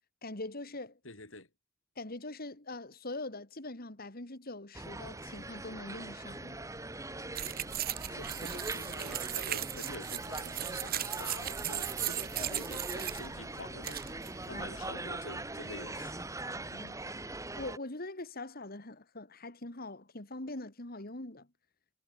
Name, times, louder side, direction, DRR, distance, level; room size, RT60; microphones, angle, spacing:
voice 1, 0.2-1.0 2.0-6.6 14.5-14.7 16.7-17.0 17.5-21.5, left 2 dB, 50° left, 2.7 m, -42 dB
voice 2, 1.0-1.5 8.1-16.2 17.0-17.3, left 2 dB, 75° left, 6.6 m, -48 dB
sound 1, 4.7-17.8, right 2 dB, 15° right, 1.9 m, -41 dB
sound 2, 7.3-14.9, right 12 dB, 50° right, 1.4 m, -38 dB
head